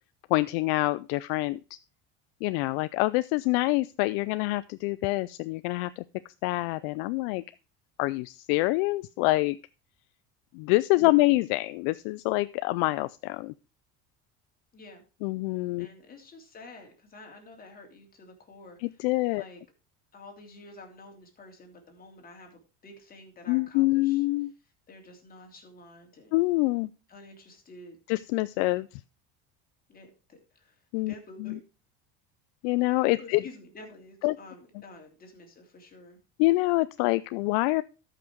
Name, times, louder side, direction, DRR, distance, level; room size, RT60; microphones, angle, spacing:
voice 1, 0.3-1.6 2.4-6.0 6.4-7.4 8.0-9.6 10.5-13.5 15.2-15.9 18.8-19.4 23.5-24.5 26.3-26.9 28.1-28.9 30.9-31.1 32.6-33.4 34.2-34.4 36.4-37.8, left 21 dB, 80° left, 15 dB, 0.5 m, -26 dB
voice 2, 10.9-11.3 14.7-15.0 15.8-19.6 20.1-24.3 24.6-26.4 27.1-28.0 29.9-31.6 33.2-36.2, left 2 dB, 30° left, 2 dB, 3.1 m, -50 dB
13.0 x 5.9 x 4.6 m, 0.33 s
supercardioid pair, 120°, 31 cm